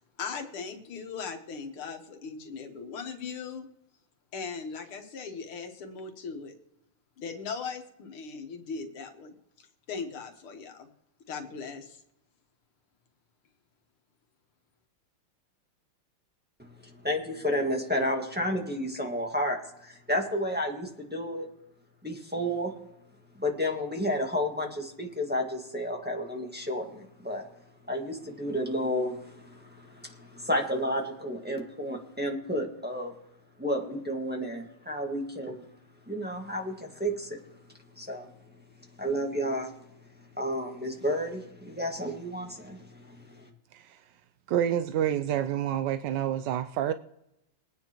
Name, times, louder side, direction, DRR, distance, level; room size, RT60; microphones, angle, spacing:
voice 1, 0.0-3.7 4.3-6.5 7.2-10.9 11.3-12.0, left 5 dB, 80° left, 2.2 m, -39 dB
voice 2, 17.0-21.5 22.0-22.7 23.4-27.4 27.9-33.1 33.6-35.6 36.1-37.4 38.0-38.3 39.0-39.7 40.4-43.5, equal, 5° right, 1.3 m, -31 dB
voice 3, 44.5-46.9, right 10 dB, 75° right, 1.0 m, -28 dB
23.0 x 9.4 x 3.0 m
omnidirectional pair, 2.4 m